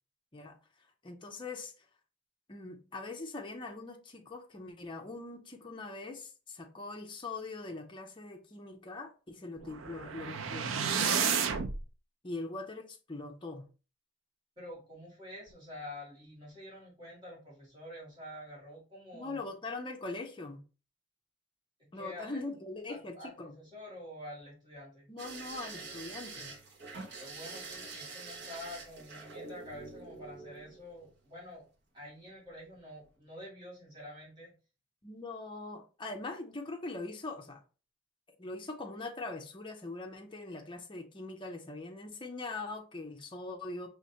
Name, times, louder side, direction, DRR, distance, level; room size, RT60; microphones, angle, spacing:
voice 1, 1.0-1.7 2.5-11.5 12.2-13.6 19.1-20.6 21.9-23.5 25.1-26.5 35.0-37.6 38.4-43.9, left 3 dB, 25° left, 0.6 m, -42 dB
sound 1, 9.6-11.8, right 6 dB, 85° right, 0.5 m, -31 dB
voice 2, 14.6-19.4 21.9-22.4 22.9-25.1 27.2-31.6 31.9-34.5, left 1 dB, 25° right, 2.2 m, -47 dB
sound 2, 25.2-31.2 32.5-32.8 33.1-33.2, right 3 dB, 55° right, 1.0 m, -46 dB
4.8 x 3.1 x 2.8 m
head